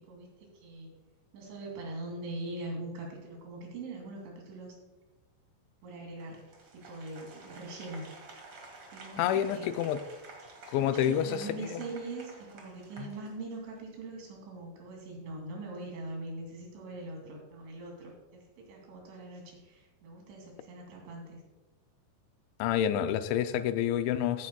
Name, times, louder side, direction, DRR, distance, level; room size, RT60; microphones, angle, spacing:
voice 1, 1.3-4.7 5.8-6.5 6.7-8.1 8.9-9.7 10.8-21.4, right 2 dB, 80° right, 0 dB, 5.1 m, -42 dB
Applause, 6.2-13.8, right 3 dB, 50° right, 1.6 m, -51 dB
voice 2, 9.2-10.0 10.7-11.5 11.7-11.8 13.0-13.1 22.6-24.5, left 10 dB, 85° left, 10 dB, 2.8 m, -28 dB
15.5 x 9.6 x 2.3 m, 1.1 s
omnidirectional pair, 5.3 m